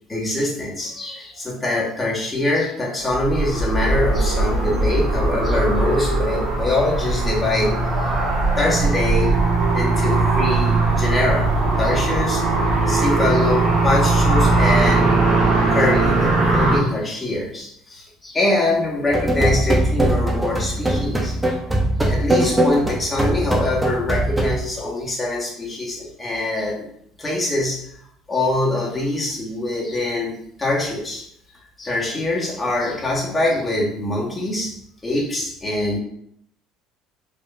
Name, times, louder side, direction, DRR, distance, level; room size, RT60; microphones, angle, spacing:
voice 1, 0.1-9.4 9.6-11.5 11.8-15.2 15.7-21.7 22.0-26.9 27.2-27.9 28.3-31.2 31.8-34.7 35.0-36.0, left 2 dB, 20° left, -4 dB, 1.8 m, -24 dB
sound 1, 3.1-16.8, right 3 dB, 55° right, 1.7 m, -19 dB
sound 2, 19.1-24.6, right 1 dB, 10° right, 0.9 m, -21 dB
5.0 x 3.5 x 2.7 m, 0.71 s
figure-of-eight pair, 60°, 0 cm